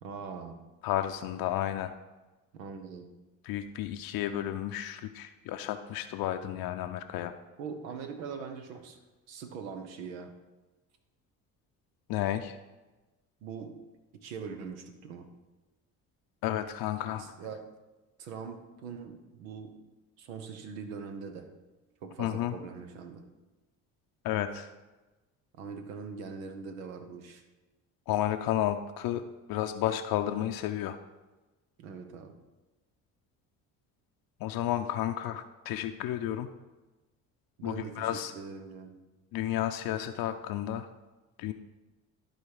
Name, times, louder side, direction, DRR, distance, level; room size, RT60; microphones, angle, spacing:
voice 1, 0.0-0.6 2.5-3.1 7.6-9.0 9.3-10.3 13.4-13.8 14.1-15.3 17.2-17.6 18.2-19.7 20.2-21.5 22.0-23.3 25.6-27.4 31.8-32.4 37.6-38.9, right 5 dB, 85° right, 7 dB, 0.9 m, -42 dB
voice 2, 0.8-1.9 3.4-7.3 12.1-12.6 16.4-17.2 22.2-22.5 24.2-24.7 28.1-29.2 29.5-31.0 34.4-36.5 37.6-38.3 39.3-40.9 41.4-41.5, left 12 dB, 65° left, 7 dB, 0.6 m, -32 dB
11.5 x 4.3 x 4.8 m, 1.1 s
hypercardioid pair, 55°, 39 cm